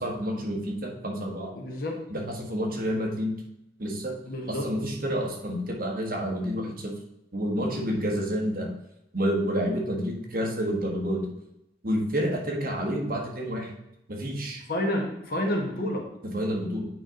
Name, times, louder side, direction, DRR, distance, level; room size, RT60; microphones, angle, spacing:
voice 1, 0.0-1.5 2.1-3.3 3.8-4.2 4.5-6.9 7.3-8.7 9.1-11.3 11.8-13.7 14.1-14.6 16.2-16.9, equal, 55° right, 0 dB, 1.6 m, -29 dB
voice 2, 1.5-2.0 4.2-4.7 14.7-16.1, left 1 dB, 55° left, 1 dB, 1.6 m, -29 dB
8.8 x 4.9 x 3.9 m, 0.83 s
head